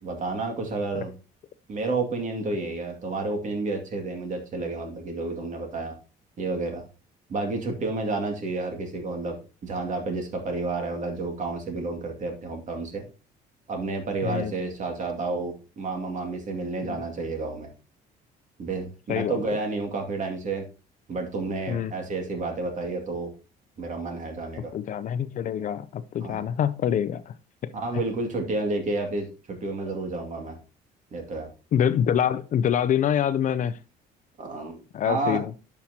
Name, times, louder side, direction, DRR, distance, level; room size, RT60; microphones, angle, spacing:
voice 1, 0.0-1.1 1.7-6.0 6.4-6.8 7.3-13.0 13.7-17.7 18.6-20.7 21.1-23.3 23.8-24.7 26.2-26.4 27.7-30.6 31.1-31.5 34.4-35.4, right 3 dB, 45° right, 2.3 m, -30 dB
voice 2, 14.2-14.5 16.8-17.0 19.1-19.4 21.7-21.9 24.7-27.3 27.6-27.7 31.7-33.8 34.9-35.5, left 9 dB, 50° left, 0.5 m, -25 dB
10.5 x 5.8 x 2.8 m
cardioid pair, 110°, 17 cm